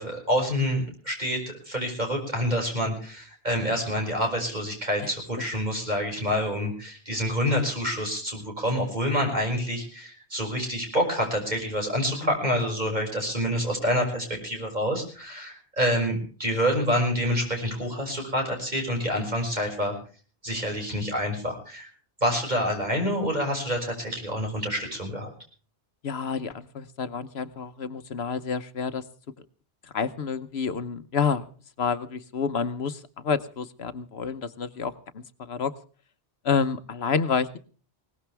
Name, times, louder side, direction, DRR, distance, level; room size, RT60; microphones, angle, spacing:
voice 1, 0.0-19.9 20.4-21.9 22.2-25.3, equal, 45° right, 1 dB, 6.3 m, -27 dB
voice 2, 26.0-29.0 29.9-31.5 31.8-35.7 36.4-37.6, left 6 dB, 75° left, 11 dB, 1.2 m, -29 dB
21.5 x 19.0 x 3.4 m, 0.40 s
omnidirectional pair, 1.1 m